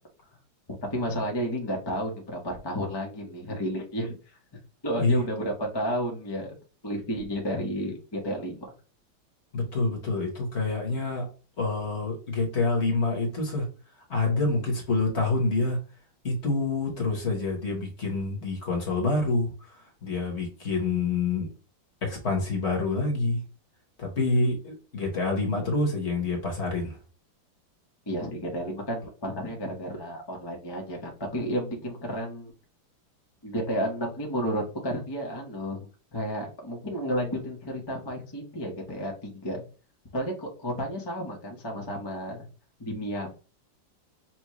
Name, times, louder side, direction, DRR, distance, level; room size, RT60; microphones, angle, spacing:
voice 1, 0.9-4.2 4.8-6.5 6.8-8.7 28.1-32.5 33.4-35.8 36.1-39.6 40.1-42.4 42.8-43.3, equal, 20° left, 0 dB, 0.6 m, -32 dB
voice 2, 9.5-11.3 11.6-13.7 14.1-15.8 16.2-19.5 20.0-21.5 22.0-23.4 24.0-27.0, left 3 dB, 40° left, 1 dB, 1.2 m, -27 dB
6.0 x 2.3 x 3.0 m, 0.35 s
omnidirectional pair, 2.1 m